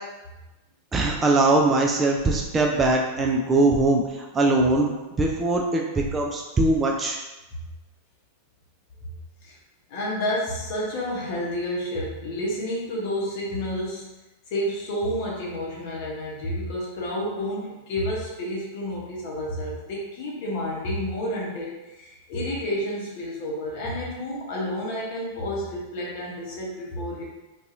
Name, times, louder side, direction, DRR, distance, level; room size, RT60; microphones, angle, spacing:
voice 1, 0.9-7.2, right 2 dB, 20° right, 0 dB, 0.3 m, -21 dB
voice 2, 9.9-14.1 14.5-27.2, equal, 50° left, -4 dB, 0.8 m, -30 dB
2.6 x 2.3 x 2.5 m, 1.0 s
figure-of-eight pair, 90°, 0 cm